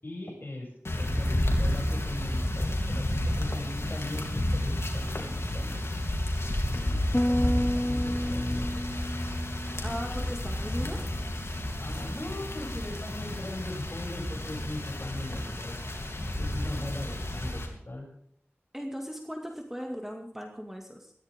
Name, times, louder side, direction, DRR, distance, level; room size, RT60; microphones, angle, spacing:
voice 1, 0.0-0.7 1.0-5.8 6.5-8.7 9.0-9.1 11.8-15.7 16.4-18.1, left 1 dB, 50° left, -1 dB, 7.9 m, -39 dB
sound 1, 0.8-17.7, left 1 dB, 70° left, 3.1 m, -31 dB
sound 2, 7.1-10.6, equal, 15° left, 0.8 m, -31 dB
voice 2, 9.8-11.0 18.7-21.1, equal, 10° right, 2 dB, 2.3 m, -38 dB
20.0 x 14.5 x 3.7 m, 0.66 s
wide cardioid pair, 45°, 5 cm